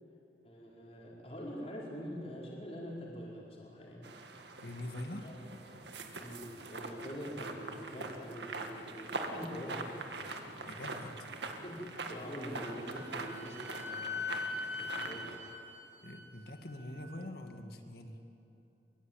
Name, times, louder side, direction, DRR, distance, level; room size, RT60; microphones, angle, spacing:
voice 1, 0.4-4.1 5.2-5.4 6.2-10.6 11.6-14.4 14.8-15.4, equal, 35° left, -4 dB, 4.8 m, -44 dB
sound 1, 4.0-15.4, right 3 dB, 80° right, 1.9 m, -43 dB
voice 2, 4.6-5.3 10.6-11.3 16.0-18.2, left 1 dB, 60° left, 5 dB, 2.2 m, -44 dB
Wind instrument woodwind instrument, 12.5-17.0, left 4 dB, 15° right, 3.4 m, -42 dB
23.5 x 22.5 x 9.0 m, 2.7 s
head